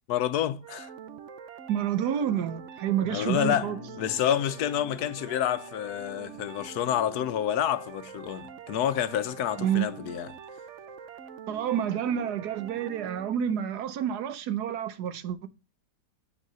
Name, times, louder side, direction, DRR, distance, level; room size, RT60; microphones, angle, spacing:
voice 1, 0.1-0.9 3.1-10.3, left 10 dB, 80° left, 1.2 m, -28 dB
sound 1, 0.6-13.3, right 7 dB, 60° right, 0.8 m, -45 dB
voice 2, 1.7-3.8 9.6-9.9 11.5-15.5, right 9 dB, 85° right, 1.4 m, -29 dB
sound 2, 3.0-8.8, left 14 dB, 50° left, 0.9 m, -50 dB
9.1 x 3.8 x 6.8 m
omnidirectional pair, 1.7 m